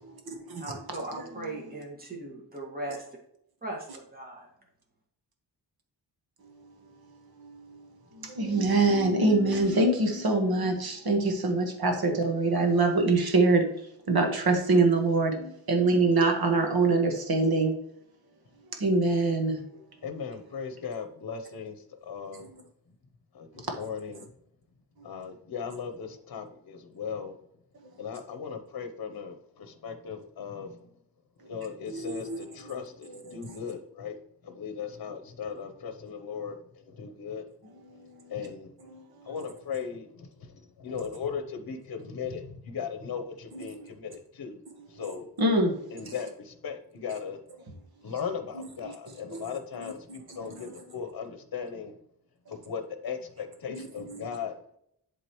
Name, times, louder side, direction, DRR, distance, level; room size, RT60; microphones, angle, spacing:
voice 1, 0.6-3.1 3.6-4.5, right 2 dB, 20° right, -2 dB, 1.9 m, -38 dB
voice 2, 8.4-13.6 14.1-15.3 15.7-17.7 18.8-19.5 32.0-32.4 45.4-45.7, right 3 dB, 60° right, 3 dB, 1.5 m, -23 dB
voice 3, 20.0-22.4 23.3-24.3 25.0-27.4 28.0-30.9 31.5-37.5 38.3-38.8 39.2-44.6 44.9-45.3 45.9-47.4 48.0-52.0 52.5-54.6, left 6 dB, 60° left, 7 dB, 0.9 m, -38 dB
11.0 x 3.8 x 3.1 m, 0.72 s
wide cardioid pair, 150°, 41 cm